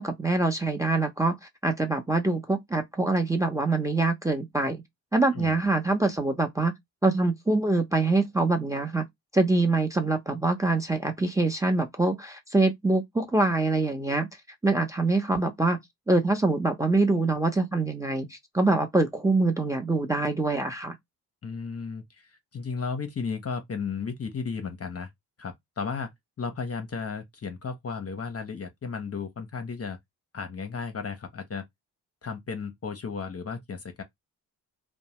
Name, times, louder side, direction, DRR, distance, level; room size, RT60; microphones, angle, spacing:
voice 1, 0.0-1.4 1.6-4.8 5.1-6.7 7.0-9.0 9.3-14.3 14.6-15.8 16.1-21.0, right 2 dB, 5° right, 0.8 m, -24 dB
voice 2, 21.4-25.1 25.4-26.1 26.4-30.0 30.3-31.6 32.2-34.0, left 5 dB, 35° left, 0.8 m, -34 dB
2.6 x 2.2 x 3.1 m
supercardioid pair, 45°, 43 cm